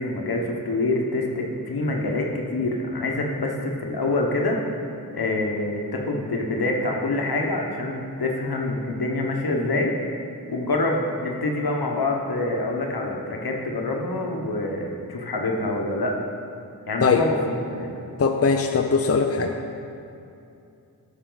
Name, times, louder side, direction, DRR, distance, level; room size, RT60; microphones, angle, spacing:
voice 1, 0.0-4.6 5.1-9.9 10.5-16.2 16.9-17.9, left 2 dB, 75° left, 0 dB, 1.3 m, -26 dB
voice 2, 18.2-19.6, left 5 dB, 40° left, 4 dB, 0.6 m, -20 dB
11.5 x 6.3 x 4.0 m, 2.6 s
cardioid pair, 50°, 38 cm